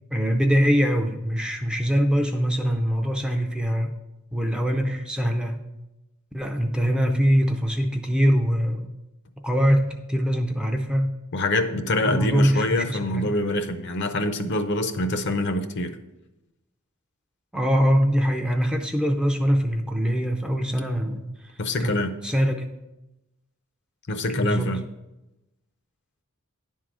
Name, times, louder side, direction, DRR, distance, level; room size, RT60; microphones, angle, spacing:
voice 1, 0.1-3.9 4.3-5.6 6.3-8.9 9.4-11.1 12.0-13.3 17.5-21.9 22.2-22.7 24.3-24.7, equal, 5° right, 3 dB, 0.5 m, -23 dB
voice 2, 11.3-16.0 21.6-22.1 24.1-24.8, left 1 dB, 50° left, 9 dB, 0.6 m, -25 dB
10.5 x 3.7 x 6.1 m, 0.98 s
head